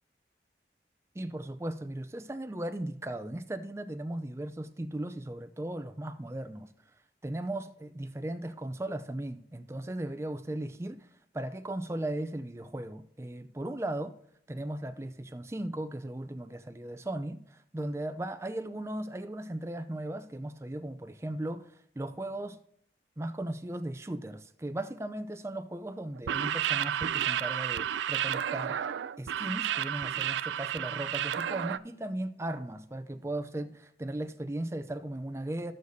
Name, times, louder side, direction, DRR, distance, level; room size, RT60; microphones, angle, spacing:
voice 1, 1.1-6.7 7.2-11.1 11.3-14.1 14.5-21.7 22.0-22.6 23.2-28.8 29.2-35.7, right 1 dB, 15° right, 0.4 m, -37 dB
sound 1, 26.2-31.8, right 10 dB, 85° right, 0.3 m, -31 dB
14.5 x 6.4 x 2.7 m
head